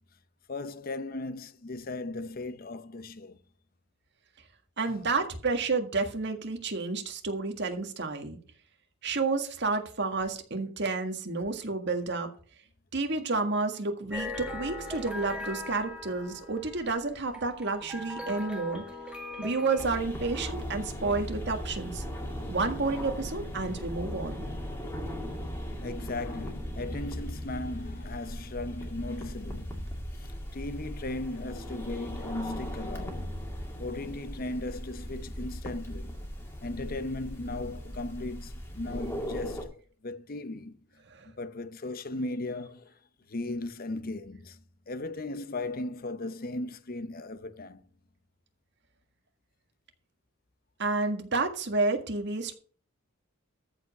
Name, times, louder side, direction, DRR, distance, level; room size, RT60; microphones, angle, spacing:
voice 1, 0.5-3.4 4.8-5.0 25.8-33.4 33.8-36.2 36.6-40.8 41.2-42.9 43.3-44.6 44.9-47.8, left 2 dB, 45° left, 0.7 m, -37 dB
voice 2, 4.8-8.4 9.0-12.3 12.9-18.8 19.4-22.0 22.5-24.4 41.1-41.3 50.8-52.5, right 3 dB, 55° right, 1.8 m, -30 dB
sound 1, 14.1-19.9, left 2 dB, 5° right, 1.6 m, -40 dB
sound 2, 19.8-39.7, equal, 10° left, 2.3 m, -38 dB
14.0 x 5.1 x 6.7 m
head